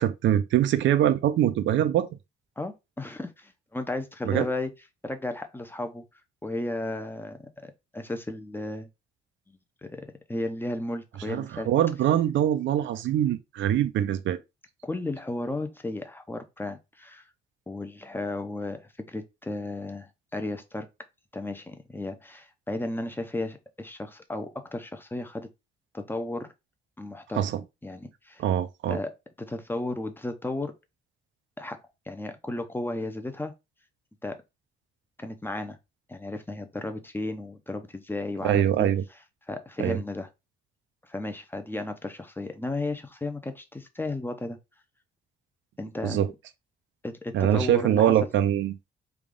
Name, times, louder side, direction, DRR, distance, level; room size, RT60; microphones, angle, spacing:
voice 1, 0.0-2.1 4.2-4.4 11.3-14.4 27.4-27.6 28.4-29.0 38.4-39.0 39.8-40.0 46.0-46.3 47.3-48.7, right 11 dB, 70° right, 0.5 m, -23 dB
voice 2, 2.6-4.7 5.0-6.0 6.4-8.9 9.5-11.7 14.8-17.3 17.7-20.9 21.3-25.5 25.9-26.5 27.0-27.5 27.8-28.4 28.9-30.7 31.6-33.5 34.2-34.4 35.2-35.8 36.1-38.9 39.5-40.3 41.0-44.6 45.8-46.2 47.0-48.1, left 2 dB, 10° left, 0.6 m, -34 dB
3.5 x 2.4 x 3.7 m
cardioid pair, 90°, 20 cm